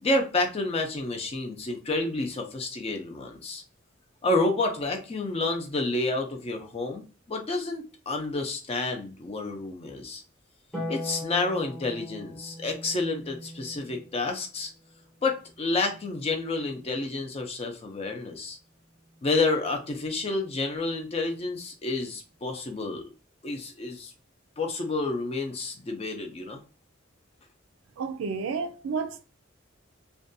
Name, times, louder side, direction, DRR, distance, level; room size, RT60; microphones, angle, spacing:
voice 1, 0.0-3.6 4.2-10.2 10.9-14.7 15.2-18.6 19.2-23.0 23.4-24.1 24.6-26.6, left 2 dB, 30° left, 0.5 m, -29 dB
Harp, 10.7-17.2 18.9-19.9, left 1 dB, ahead, 0.8 m, -42 dB
voice 2, 28.0-29.2, right 5 dB, 90° right, 0.4 m, -31 dB
2.6 x 2.2 x 2.5 m
head